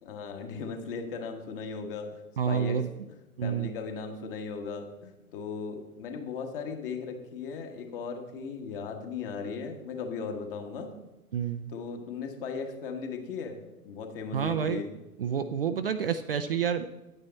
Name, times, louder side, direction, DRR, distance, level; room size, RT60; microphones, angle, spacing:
voice 1, 0.0-2.2 2.5-2.8 3.4-10.9 11.7-13.6 13.8-15.0, left 5 dB, 35° left, 4 dB, 1.6 m, -37 dB
voice 2, 2.4-2.9 3.4-3.7 11.3-11.7 14.3-14.8 15.2-16.9, right 7 dB, 40° right, 9 dB, 0.5 m, -29 dB
10.0 x 9.0 x 4.2 m, 1.0 s
figure-of-eight pair, 115°, 45 cm